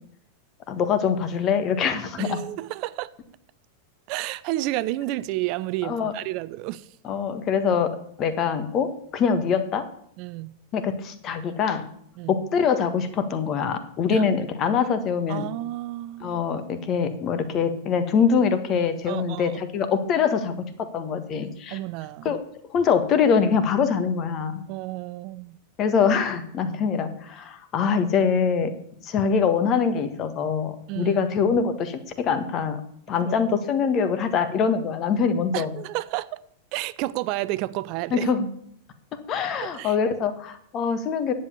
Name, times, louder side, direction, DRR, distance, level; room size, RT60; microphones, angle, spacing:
voice 1, 0.7-2.4 5.8-6.1 7.0-7.9 8.2-9.9 10.7-11.9 12.3-15.5 16.2-21.8 22.2-22.4 22.7-24.6 25.8-28.7 29.0-32.8 33.1-35.7 38.1-38.5 39.1-41.3, left 6 dB, 35° left, 1.5 m, -24 dB
voice 2, 2.2-3.1 4.1-6.9 10.2-10.6 12.2-12.3 14.1-14.2 15.3-16.4 19.1-19.6 21.7-22.4 24.7-25.6 30.9-31.2 33.2-33.4 35.5-36.3 36.7-38.3 39.6-40.0, right 17 dB, 45° right, 0.5 m, -31 dB
10.5 x 7.8 x 7.2 m
figure-of-eight pair, 90°, 0 cm